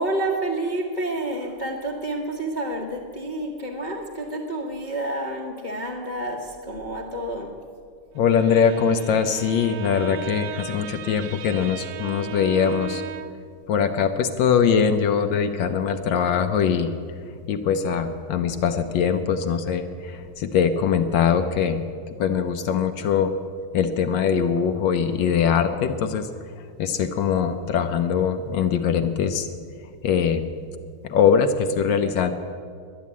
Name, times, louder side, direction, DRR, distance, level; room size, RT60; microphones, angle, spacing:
voice 1, 0.0-7.6, right 1 dB, 35° left, -2 dB, 0.8 m, -29 dB
voice 2, 8.1-13.0 13.7-16.9 17.5-21.8 22.2-23.3 23.7-26.3 26.8-29.5 30.0-30.4 31.0-32.3, left 7 dB, 70° left, 8 dB, 1.3 m, -22 dB
Bowed string instrument, 8.2-13.5, right 9 dB, 70° right, 1.3 m, -36 dB
11.5 x 11.0 x 8.3 m, 2.1 s
omnidirectional pair, 2.4 m